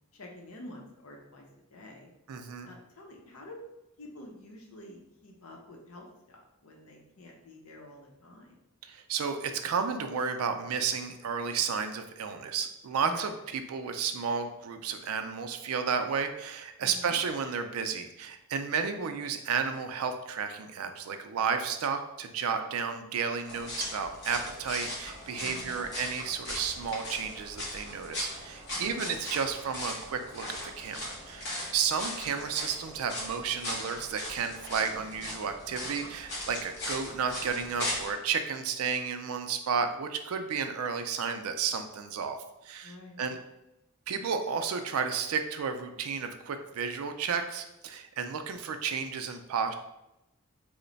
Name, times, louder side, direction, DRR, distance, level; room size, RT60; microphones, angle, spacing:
voice 1, 0.1-2.1 2.6-3.6 4.0-8.6 13.0-13.4 16.8-17.2 25.4-25.8 28.7-29.2 42.8-43.2, left 1 dB, 85° left, 1 dB, 0.7 m, -49 dB
voice 2, 2.3-2.7 8.8-42.4 42.6-43.4 44.1-49.7, right 6 dB, 90° right, 8 dB, 0.4 m, -32 dB
sound 1, 23.5-38.1, left 1 dB, 55° left, 0.9 m, -39 dB
3.0 x 2.1 x 3.9 m, 0.91 s
head